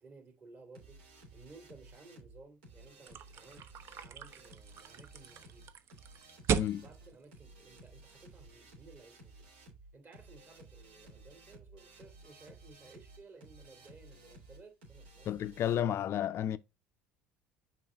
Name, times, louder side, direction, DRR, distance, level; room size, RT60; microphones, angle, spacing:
voice 1, 0.0-3.6 4.0-5.7 6.3-6.4 6.7-9.5 9.9-15.4, right 3 dB, 40° right, 2.6 m, -57 dB
sound 1, 0.7-15.8, right 2 dB, 80° right, 3.3 m, -56 dB
sound 2, 3.1-8.4, right 7 dB, 55° right, 0.8 m, -38 dB
voice 2, 6.5-6.8 15.3-16.6, left 10 dB, 50° left, 0.4 m, -32 dB
6.2 x 4.4 x 3.8 m
hypercardioid pair, 70°, 6 cm